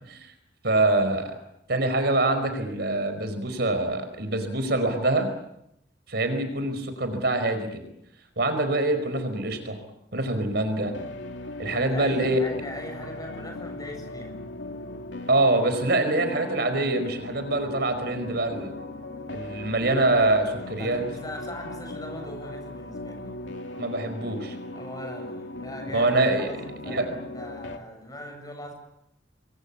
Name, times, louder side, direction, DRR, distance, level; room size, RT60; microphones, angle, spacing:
voice 1, 0.6-1.3 1.7-5.3 6.1-7.8 8.4-9.8 10.1-10.9 11.6-12.4 15.3-18.7 19.3-21.0 23.8-24.6 25.9-26.5 26.9-27.1, right 2 dB, 60° right, 8 dB, 4.9 m, -25 dB
sound 1, 10.8-27.8, left 2 dB, 80° left, 2.6 m, -38 dB
voice 2, 11.7-14.4 20.8-23.3 24.7-26.1 26.4-28.7, left 1 dB, 20° left, 4 dB, 7.7 m, -40 dB
28.0 x 22.5 x 8.6 m, 0.81 s
head